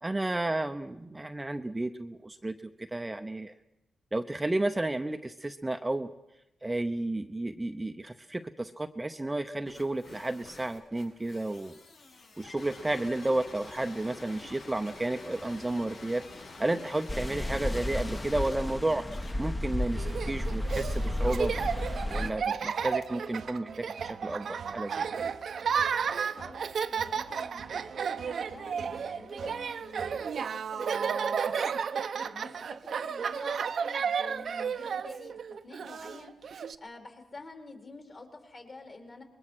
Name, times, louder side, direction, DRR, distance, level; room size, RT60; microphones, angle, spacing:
voice 1, 0.0-3.5 4.1-6.1 6.6-11.8 12.4-16.2 16.6-19.0 19.4-23.7 24.0-25.1, right 2 dB, 15° right, 7 dB, 0.8 m, -32 dB
sound 1, 9.6-19.3, left 3 dB, 75° left, 6.3 m, -48 dB
sound 2, 17.1-22.3, left 1 dB, 20° left, 1.1 m, -32 dB
Laughter, 20.0-36.7, right 6 dB, 65° right, 0.8 m, -33 dB
voice 2, 26.0-35.4 35.6-39.2, left 3 dB, 40° left, 4 dB, 4.0 m, -49 dB
25.0 x 21.5 x 6.3 m, 0.91 s
cardioid pair, 105°, 0 cm